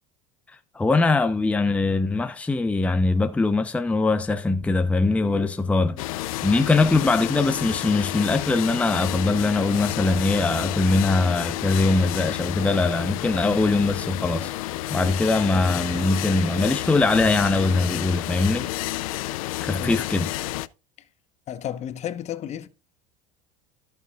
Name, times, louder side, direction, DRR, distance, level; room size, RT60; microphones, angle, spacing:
voice 1, 0.7-6.0 6.4-14.5 14.9-18.7 19.6-20.3, left 3 dB, 10° left, 0.6 m, -22 dB
sound 1, 6.0-20.7, left 16 dB, 85° left, 0.5 m, -30 dB
voice 2, 21.5-22.7, left 10 dB, 40° left, 1.0 m, -32 dB
14.0 x 6.8 x 2.3 m
supercardioid pair, 110°, 17 cm